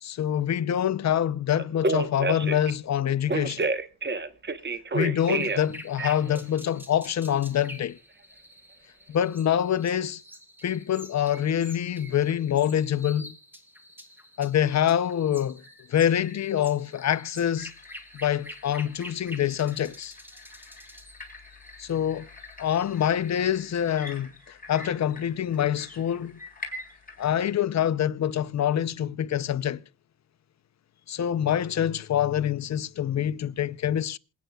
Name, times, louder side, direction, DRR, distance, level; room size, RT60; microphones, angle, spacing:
voice 1, 0.0-3.7 4.9-8.0 9.1-10.2 10.6-13.3 14.4-15.6 15.9-17.7 18.1-20.1 21.8-22.3 22.6-26.4 27.2-29.8 31.1-34.2, left 10 dB, 40° left, 0.6 m, -26 dB
Telephone, 1.6-2.7 3.3-5.7 6.0-6.4, right 3 dB, 25° right, 1.0 m, -28 dB
sound 1, 5.2-24.0, equal, 5° right, 2.0 m, -48 dB
sound 2, 17.6-27.5, left 2 dB, 20° left, 3.7 m, -46 dB
27.0 x 9.1 x 2.3 m
cardioid pair, 95°, 45 cm